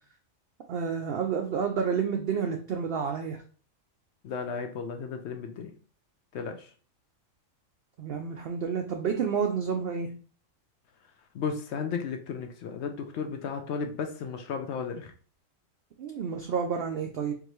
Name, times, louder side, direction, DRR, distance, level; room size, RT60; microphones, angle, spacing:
voice 1, 0.7-3.4 8.0-10.1 16.0-17.3, right 6 dB, 65° right, 3 dB, 0.6 m, -30 dB
voice 2, 4.2-5.7 6.3-6.7 11.3-15.1, left 6 dB, 65° left, 5 dB, 0.8 m, -34 dB
4.7 x 2.6 x 3.0 m, 0.42 s
omnidirectional pair, 1.4 m